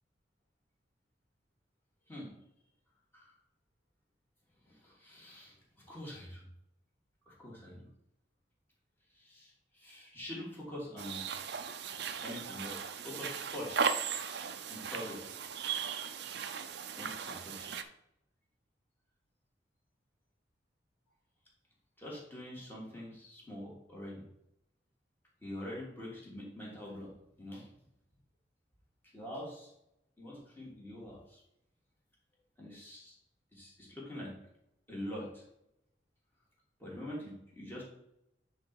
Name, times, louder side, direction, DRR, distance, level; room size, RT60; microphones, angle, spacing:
voice 1, 4.7-5.5 5.9-6.5 7.3-7.9 9.1-11.2 11.9-13.9 14.7-15.4 17.0-17.7 22.0-24.3 25.4-27.7 29.1-29.7 30.2-31.4 32.6-33.1 33.5-34.3 34.9-35.4 36.8-37.8, left 1 dB, 10° left, -5 dB, 2.8 m, -45 dB
sound 1, 11.0-17.8, right 6 dB, 60° right, 0.6 m, -37 dB
9.4 x 4.1 x 4.7 m, 0.80 s
head